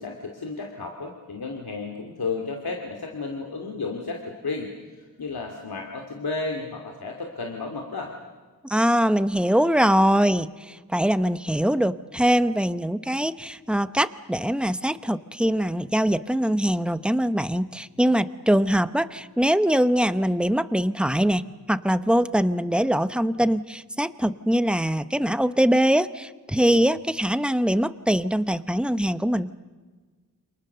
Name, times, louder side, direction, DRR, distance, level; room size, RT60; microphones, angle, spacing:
voice 1, 0.0-4.7 5.0-8.1, left 4 dB, 75° left, 2 dB, 2.7 m, -33 dB
voice 2, 8.6-29.5, equal, 5° right, 12 dB, 0.9 m, -23 dB
29.5 x 27.5 x 6.8 m, 1.4 s
wide cardioid pair, 115°, 38 cm